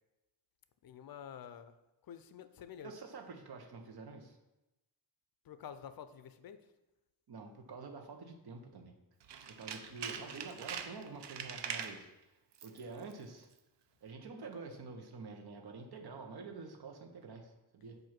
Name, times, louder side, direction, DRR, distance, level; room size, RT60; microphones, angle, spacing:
voice 1, 0.8-1.7 2.0-2.9 5.4-6.6 9.9-10.5, left 8 dB, 60° left, 11 dB, 0.5 m, -50 dB
voice 2, 2.8-4.4 7.3-8.9 9.5-12.1 12.6-13.5 14.0-18.0, right 4 dB, 65° right, 4 dB, 0.9 m, -48 dB
Tools, 9.2-12.0 12.5-12.8 13.1-13.2, right 7 dB, 85° right, 0.6 m, -43 dB
7.6 x 2.6 x 5.8 m, 0.97 s
wide cardioid pair, 160°, 41 cm